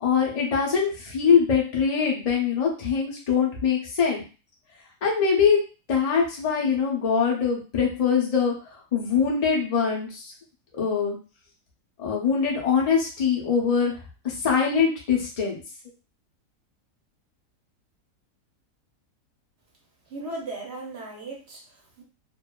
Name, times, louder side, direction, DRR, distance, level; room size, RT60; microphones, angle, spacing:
voice 1, 0.0-4.2 5.0-5.6 5.9-8.5 8.9-10.2 10.8-11.2 12.0-13.9 14.4-15.6, left 6 dB, 65° left, -2 dB, 0.3 m, -23 dB
voice 2, 20.1-22.0, right 2 dB, 55° right, -1 dB, 0.8 m, -37 dB
2.6 x 2.3 x 2.2 m, 0.33 s
omnidirectional pair, 1.8 m